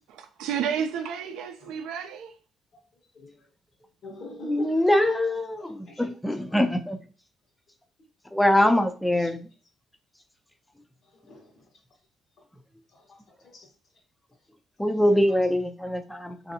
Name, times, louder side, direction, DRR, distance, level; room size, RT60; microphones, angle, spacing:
voice 1, 0.1-2.3, right 7 dB, 90° right, 0.4 m, -31 dB
voice 2, 3.1-3.5 4.0-4.7 5.6-6.1 9.2-9.3 11.1-11.7 12.9-13.2 13.4-13.7 15.3-15.4, left 2 dB, 60° left, 1.1 m, -45 dB
voice 3, 4.4-7.0 8.3-9.5 14.8-16.5, left 1 dB, 5° left, 0.4 m, -23 dB
3.2 x 2.6 x 2.6 m
cardioid pair, 85°, 0 cm